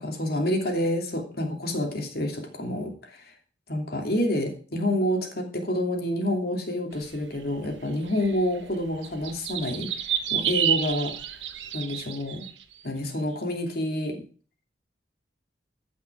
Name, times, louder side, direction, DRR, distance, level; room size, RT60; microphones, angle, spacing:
voice 1, 0.0-3.3 3.7-11.1 11.7-12.5 12.8-14.2, left 1 dB, 55° left, 2 dB, 2.9 m, -28 dB
sound 1, 7.0-12.6, right 9 dB, 80° right, 1.2 m, -30 dB
14.0 x 6.1 x 6.1 m, 0.40 s
head